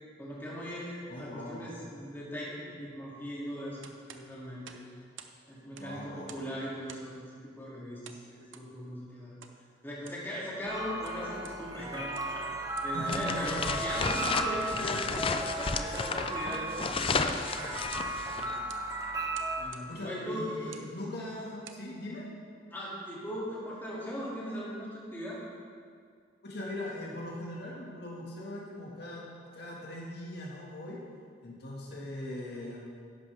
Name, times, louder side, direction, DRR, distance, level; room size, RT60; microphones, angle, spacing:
voice 1, 0.2-4.8 5.5-9.3 9.8-12.5 12.8-17.9 18.3-18.5 19.6-20.8 22.7-25.4, equal, 10° left, -7 dB, 2.5 m, -39 dB
voice 2, 1.1-1.7 5.8-6.7 12.9-13.8 14.5-15.0 19.9-22.3 26.4-29.3 29.5-31.0 31.4-32.8, left 1 dB, 60° left, -4 dB, 1.8 m, -40 dB
sound 1, 3.8-5.4 5.6-6.5 6.9-7.2 8.0-8.7 9.4-9.6 9.9-10.3 10.8-11.6 12.0-12.4 12.7-13.0 13.5-13.6 14.2-14.4 15.1-15.3 15.7-16.1 16.4-16.7 17.2-17.5 17.8-18.3 18.7-18.9 19.3-19.9 20.6-20.9 21.4-21.9, right 8 dB, 90° right, 0.7 m, -50 dB
sound 2, 10.7-19.6, right 2 dB, 20° right, 1.0 m, -36 dB
sound 3, 13.0-18.5, left 4 dB, 30° left, 0.4 m, -33 dB
11.0 x 10.5 x 3.5 m, 2.1 s
head